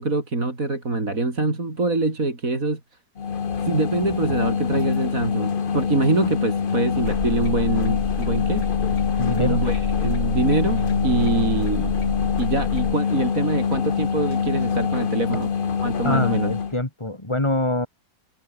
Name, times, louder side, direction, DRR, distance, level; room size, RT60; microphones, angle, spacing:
voice 1, 0.0-2.8 3.6-8.7 9.4-12.0 12.4-15.5 15.8-16.5, right 3 dB, 50° right, 4.5 m, -24 dB
sound 1, 3.2-16.7, left 6 dB, 40° left, 1.0 m, -25 dB
sound 2, 6.9-16.8, right 3 dB, 85° right, 5.8 m, -40 dB
sound 3, 7.0-12.9, left 6 dB, 60° left, 2.1 m, -28 dB
voice 2, 9.2-9.6 16.0-17.9, left 1 dB, 15° left, 3.0 m, -25 dB
omnidirectional pair, 1.8 m